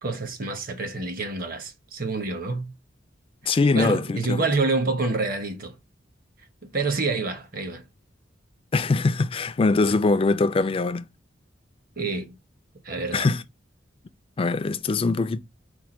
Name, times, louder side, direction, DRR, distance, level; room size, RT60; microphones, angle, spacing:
voice 1, 0.0-2.7 3.7-5.8 6.6-7.9 12.0-12.4 12.8-13.3, right 3 dB, 50° right, 0.9 m, -27 dB
voice 2, 3.5-4.4 8.7-11.1 13.1-13.4 14.4-15.4, left 3 dB, 30° left, 0.3 m, -22 dB
4.5 x 2.2 x 4.3 m
head